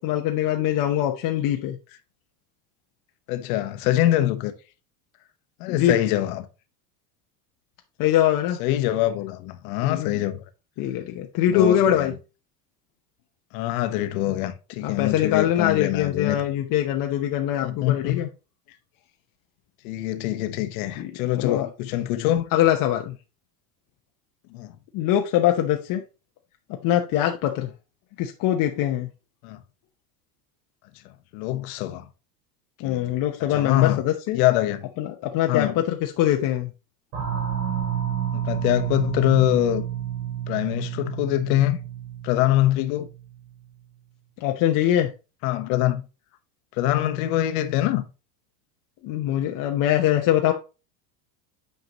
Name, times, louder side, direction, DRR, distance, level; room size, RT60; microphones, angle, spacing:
voice 1, 0.0-1.8 5.7-5.9 8.0-8.6 9.8-10.2 10.8-12.1 14.3-14.4 14.8-18.3 21.0-21.7 22.5-23.1 24.9-26.0 26.8-27.7 28.2-29.1 32.8-34.4 35.0-36.7 44.4-45.1 49.0-50.5, left 11 dB, 45° left, 0.8 m, -23 dB
voice 2, 3.3-4.5 5.6-6.5 8.6-10.4 11.5-12.1 13.5-16.4 17.6-18.3 19.8-22.5 24.5-24.8 29.4-29.6 31.3-32.0 32.8-33.1 33.5-34.0 34.3-34.9 35.5-35.8 38.3-39.8 40.5-41.8 42.2-43.1 45.4-46.0 46.8-48.0, left 14 dB, 65° left, 1.1 m, -24 dB
sound 1, 37.1-43.5, right 10 dB, 65° right, 3.6 m, -30 dB
8.1 x 4.6 x 2.9 m
supercardioid pair, 130°, 47 cm